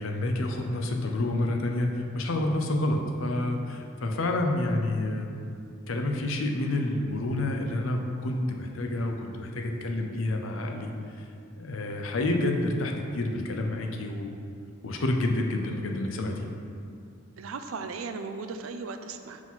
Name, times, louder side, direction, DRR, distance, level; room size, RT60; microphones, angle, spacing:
voice 1, 0.0-5.5 5.9-10.9 11.2-11.3 11.6-14.4 14.8-16.5, left 1 dB, 75° left, 3 dB, 0.6 m, -29 dB
voice 2, 17.4-19.4, right 4 dB, 90° right, 7 dB, 0.4 m, -36 dB
4.8 x 3.9 x 5.6 m, 2.4 s
head